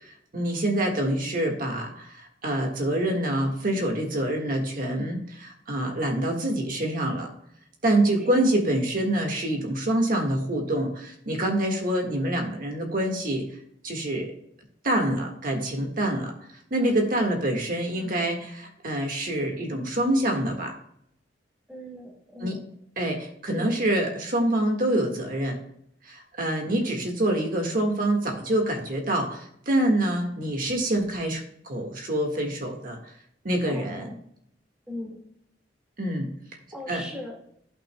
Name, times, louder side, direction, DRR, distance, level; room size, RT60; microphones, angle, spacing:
voice 1, 0.0-7.3 7.8-13.4 13.8-14.3 14.8-16.3 16.7-20.8 22.4-22.6 23.0-25.6 26.0-33.0 33.4-34.1 36.0-36.3 36.9-37.0, right 1 dB, 50° right, 2 dB, 1.6 m, -26 dB
voice 2, 21.7-22.6 23.5-23.7 33.7-34.2 34.9-35.2 36.7-37.4, left 1 dB, 5° right, -1 dB, 1.9 m, -38 dB
15.0 x 6.0 x 2.2 m, 0.71 s
head